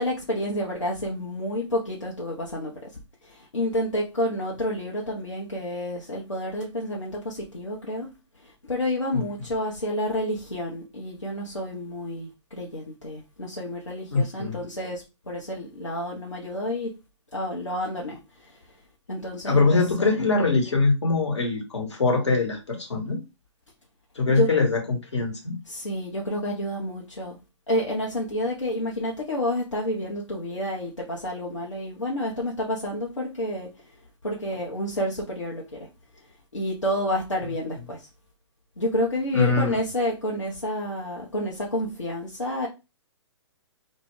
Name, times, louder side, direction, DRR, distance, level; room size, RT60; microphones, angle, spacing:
voice 1, 0.0-2.9 3.2-8.1 8.4-16.9 17.3-18.6 19.1-20.1 24.3-24.5 25.7-27.4 27.7-33.9 34.2-35.9 36.5-38.1 38.8-42.7, left 1 dB, 85° left, 0.7 m, -29 dB
voice 2, 14.1-14.6 19.4-23.2 24.1-25.6 39.3-39.7, left 3 dB, 70° left, 1.1 m, -23 dB
2.2 x 2.1 x 3.5 m
figure-of-eight pair, 120°, 15 cm